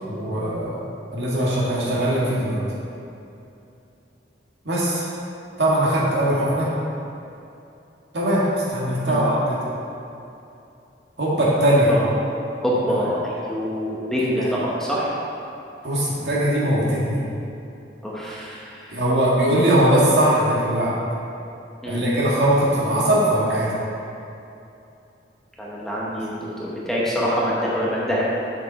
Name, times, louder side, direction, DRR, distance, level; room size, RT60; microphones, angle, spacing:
voice 1, 0.1-0.8 1.1-2.6 4.7-5.1 5.6-6.7 8.1-9.6 11.2-11.9 12.9-13.0 14.4-14.5 15.8-17.2 18.9-20.9 21.9-23.7, right 1 dB, 75° right, -6 dB, 1.9 m, -20 dB
voice 2, 12.6-15.1 18.0-19.0 21.8-22.0 25.6-28.2, equal, ahead, -7 dB, 1.0 m, -25 dB
7.1 x 6.5 x 4.1 m, 2.7 s
head